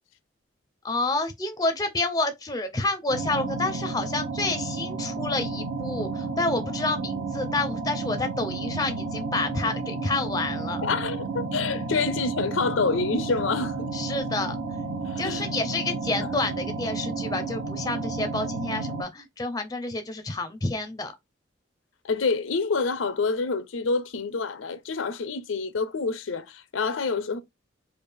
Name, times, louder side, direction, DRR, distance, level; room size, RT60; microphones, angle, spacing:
voice 1, 0.8-10.8 13.9-14.6 15.2-21.1, left 2 dB, 20° left, 0.5 m, -29 dB
sound 1, 3.1-19.0, right 3 dB, 60° right, 1.0 m, -32 dB
voice 2, 10.8-13.9 15.1-15.8 16.2-16.3 22.0-27.4, left 4 dB, 90° left, 0.5 m, -27 dB
3.3 x 2.4 x 3.3 m
head